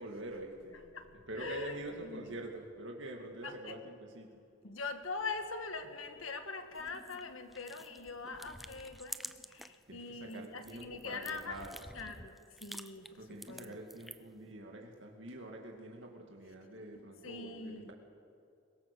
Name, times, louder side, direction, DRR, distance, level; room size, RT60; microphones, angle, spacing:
voice 1, 0.0-0.8 1.3-4.4 9.9-11.7 13.2-17.9, right 1 dB, 60° right, 1 dB, 2.2 m, -46 dB
voice 2, 0.7-2.3 3.4-3.8 4.6-11.6 11.9-13.8 16.9-17.9, left 4 dB, 80° left, 7 dB, 1.7 m, -43 dB
sound 1, 6.7-9.8 10.2-14.4, equal, ahead, 0.4 m, -50 dB
23.0 x 17.5 x 6.9 m, 2.5 s
head